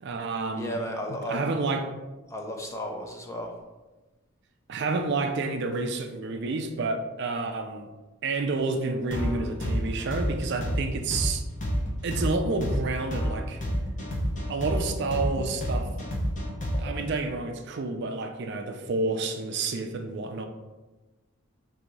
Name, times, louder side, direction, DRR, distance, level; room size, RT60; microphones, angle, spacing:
voice 1, 0.0-0.8 1.1-1.9 4.7-7.9 8.2-11.4 12.0-13.6 14.5-15.9 16.8-20.4, right 3 dB, 50° right, 5 dB, 0.4 m, -29 dB
voice 2, 0.6-1.5 2.3-3.5, equal, 15° left, 2 dB, 0.4 m, -34 dB
sound 1, 9.1-17.0, equal, 35° left, 0.8 m, -29 dB
3.9 x 2.7 x 4.6 m, 1.2 s
head